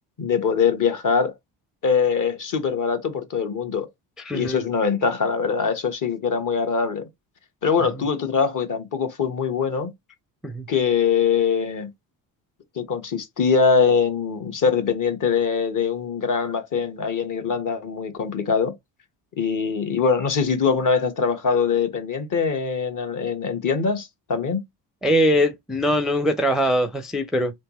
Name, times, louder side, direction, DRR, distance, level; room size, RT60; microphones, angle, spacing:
voice 1, 0.2-1.3 1.8-3.9 4.3-7.1 7.6-9.9 10.7-11.9 12.8-18.7 19.4-24.6, left 6 dB, 40° left, 1.2 m, -23 dB
voice 2, 4.2-4.6 10.4-10.7 25.0-27.5, equal, ahead, 0.5 m, -22 dB
3.4 x 2.7 x 3.0 m
hypercardioid pair, 60°, 49 cm